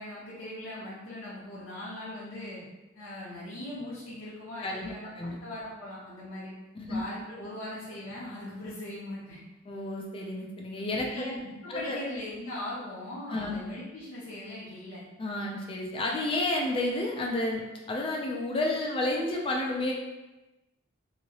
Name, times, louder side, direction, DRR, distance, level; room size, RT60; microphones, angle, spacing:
voice 1, 0.0-2.6 2.9-6.5 6.9-9.4 11.0-15.0, left 1 dB, 65° left, -9 dB, 0.8 m, -40 dB
voice 2, 9.7-11.3 11.7-12.0 13.3-13.6 15.2-19.9, left 2 dB, 25° left, -1 dB, 0.3 m, -31 dB
3.0 x 2.7 x 2.8 m, 1.1 s
head